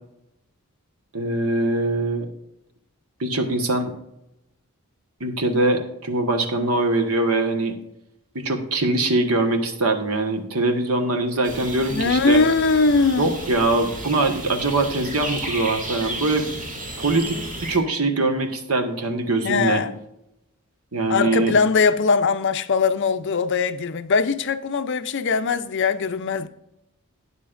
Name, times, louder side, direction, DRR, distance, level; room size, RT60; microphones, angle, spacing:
voice 1, 1.1-2.3 3.2-3.9 5.2-7.7 8.3-12.4 13.2-16.5 17.0-17.4 17.6-19.8 20.9-21.6, right 2 dB, 75° right, 1.5 m, -22 dB
sound 1, 11.4-17.8, right 1 dB, 35° right, 2.4 m, -33 dB
voice 2, 11.9-13.3 19.4-20.0 21.1-26.5, left 4 dB, 55° left, 0.6 m, -21 dB
12.5 x 9.5 x 2.6 m
head